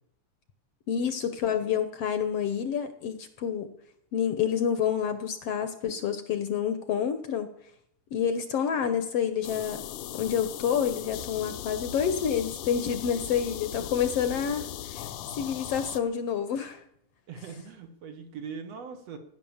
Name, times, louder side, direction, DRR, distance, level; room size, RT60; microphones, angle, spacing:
voice 1, 0.9-3.7 4.1-7.5 8.1-9.8 10.1-15.1 15.3-16.8, left 8 dB, 65° left, 10 dB, 1.8 m, -28 dB
sound 1, 9.4-16.0, left 11 dB, 80° left, 2.3 m, -38 dB
voice 2, 17.3-19.2, right 6 dB, 60° right, 6 dB, 2.4 m, -41 dB
16.0 x 10.0 x 7.2 m, 0.72 s
omnidirectional pair, 3.5 m